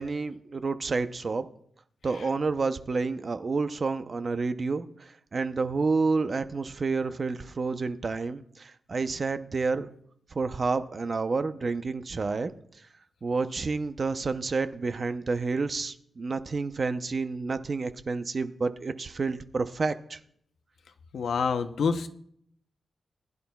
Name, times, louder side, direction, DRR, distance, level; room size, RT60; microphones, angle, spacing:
voice 1, 0.0-1.5 2.0-9.9 10.3-12.5 13.2-20.2, right 4 dB, 45° right, 10 dB, 0.7 m, -29 dB
voice 2, 21.1-22.1, left 5 dB, 85° left, 8 dB, 0.8 m, -27 dB
19.5 x 11.0 x 2.3 m, 0.66 s
wide cardioid pair, 105°, 0 cm